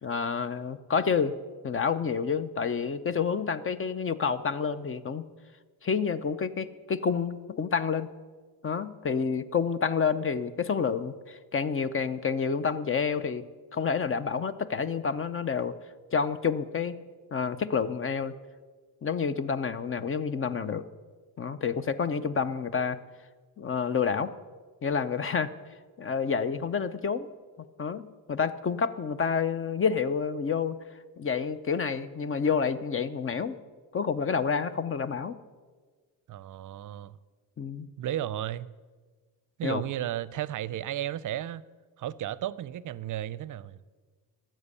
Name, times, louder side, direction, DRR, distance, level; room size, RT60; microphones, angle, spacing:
voice 1, 0.0-1.3 1.6-5.2 5.8-8.1 8.6-13.4 13.7-15.7 16.1-17.0 17.3-18.3 19.0-20.8 21.4-23.0 23.6-24.3 24.8-25.5 26.0-27.3 27.8-30.8 31.2-33.6 33.9-35.4 37.6-37.9 39.6-39.8, left 6 dB, 35° left, 0.7 m, -29 dB
voice 2, 36.3-37.1 38.0-38.7 39.6-41.6 42.0-43.8, right 12 dB, 55° right, 0.6 m, -34 dB
13.0 x 7.6 x 8.3 m
cardioid pair, 95°, 38 cm